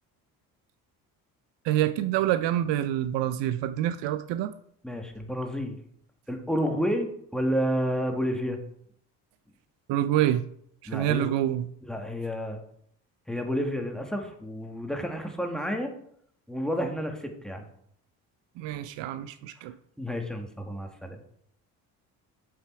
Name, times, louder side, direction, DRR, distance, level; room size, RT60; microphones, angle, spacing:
voice 1, 1.6-4.5 9.9-10.4 10.8-11.7 18.6-19.7, right 12 dB, 65° right, 12 dB, 0.6 m, -27 dB
voice 2, 4.8-5.8 6.3-8.6 10.9-11.3 11.9-12.6 13.3-15.9 16.5-17.6 20.0-21.2, equal, ahead, 3 dB, 2.0 m, -30 dB
7.7 x 7.0 x 4.7 m, 0.68 s
hypercardioid pair, 55°, 47 cm